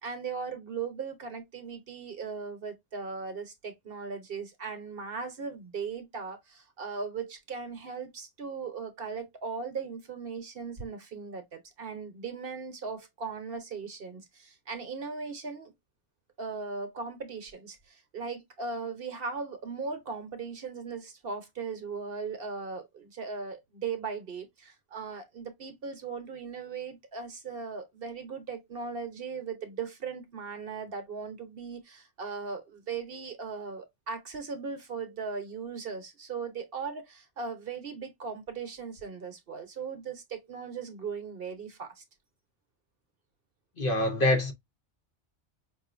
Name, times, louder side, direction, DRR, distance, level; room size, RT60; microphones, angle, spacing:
voice 1, 0.0-15.7 16.4-42.0, right 5 dB, 55° right, 1.0 m, -38 dB
voice 2, 43.8-44.5, left 1 dB, 50° left, 1.1 m, -25 dB
5.5 x 2.6 x 2.5 m
omnidirectional pair, 1.2 m